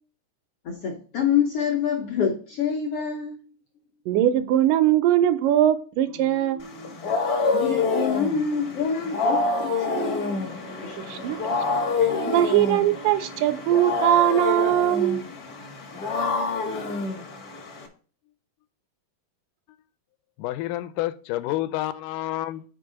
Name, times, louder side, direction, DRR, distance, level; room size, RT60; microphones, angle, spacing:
voice 1, 0.6-3.4 7.5-10.5 10.8-11.0 11.3-11.4, left 7 dB, 70° left, 1.4 m, -26 dB
voice 2, 4.1-6.6 11.0-11.4 12.3-15.2, right 12 dB, 85° right, 2.3 m, -21 dB
Singing, 6.0-17.8, right 3 dB, 65° right, 1.1 m, -46 dB
Wild animals, 6.6-17.9, left 3 dB, 55° left, 1.0 m, -27 dB
voice 3, 20.4-22.7, left 15 dB, 90° left, 2.2 m, -29 dB
5.4 x 4.6 x 6.3 m
omnidirectional pair, 3.7 m